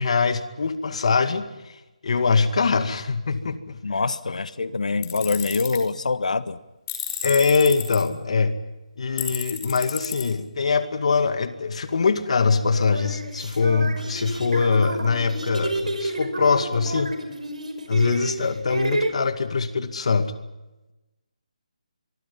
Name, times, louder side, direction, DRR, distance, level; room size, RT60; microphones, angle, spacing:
voice 1, 0.0-1.4 2.0-3.8 7.2-8.6 9.0-17.1 17.9-20.3, left 4 dB, 55° left, 9 dB, 2.2 m, -22 dB
voice 2, 3.8-6.6, left 4 dB, 75° left, 14 dB, 1.3 m, -25 dB
Tools, 5.0-5.8 6.9-8.0 9.2-10.2, left 10 dB, 25° left, 5.0 m, -31 dB
sound 1, 11.9-12.1 12.7-19.1, right 2 dB, 80° right, 5.7 m, -30 dB
24.5 x 23.5 x 5.7 m, 1.0 s
figure-of-eight pair, 160°, 4 cm